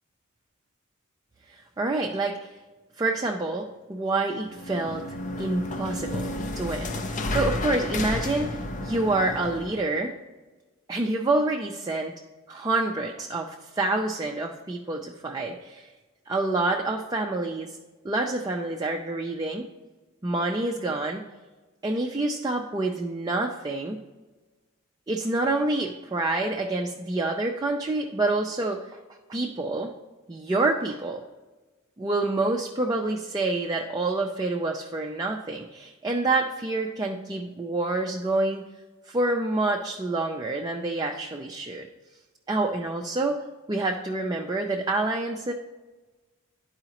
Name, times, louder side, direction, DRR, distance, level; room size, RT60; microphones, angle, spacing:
voice 1, 1.5-2.5 3.0-5.1 5.4-10.2 10.9-12.1 12.5-15.9 16.3-17.8 18.0-19.7 20.2-21.2 21.8-24.0 25.1-29.0 29.3-29.9 30.3-31.2 32.0-38.7 39.1-41.9 42.5-43.4 43.7-45.5, right 2 dB, 20° right, 1 dB, 0.4 m, -27 dB
sound 1, 4.4-9.9, left 1 dB, 35° left, 0.5 m, -32 dB
11.5 x 4.8 x 2.9 m, 1.2 s
head